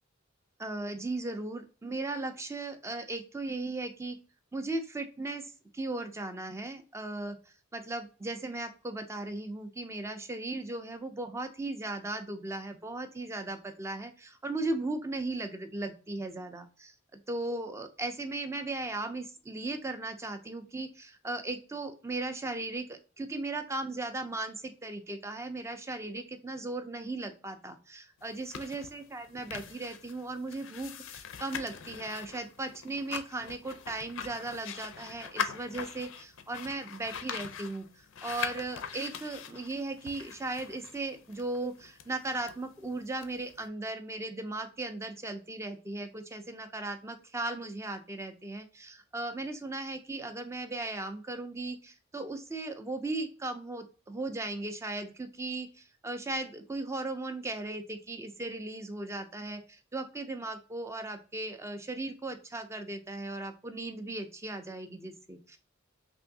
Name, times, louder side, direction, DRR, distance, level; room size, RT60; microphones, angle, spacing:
voice 1, 0.6-4.2 4.5-65.6, right 2 dB, 15° right, 7 dB, 0.4 m, -37 dB
sound 1, 28.2-43.7, left 7 dB, 70° left, 0.4 m, -42 dB
3.4 x 2.6 x 2.6 m, 0.36 s
head